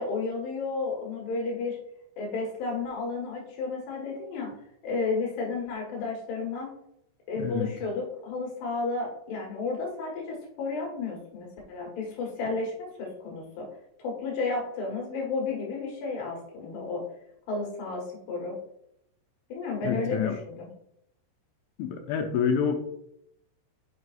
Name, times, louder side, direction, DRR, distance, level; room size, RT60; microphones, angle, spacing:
voice 1, 0.0-1.8 2.2-4.5 4.8-6.7 7.3-13.6 14.0-17.0 17.5-18.6 19.5-20.7, left 4 dB, 70° left, -2 dB, 3.5 m, -32 dB
voice 2, 7.4-7.7 19.8-20.4 21.8-22.8, left 7 dB, 85° left, 3 dB, 3.0 m, -27 dB
7.9 x 6.0 x 2.5 m, 0.77 s
omnidirectional pair, 5.3 m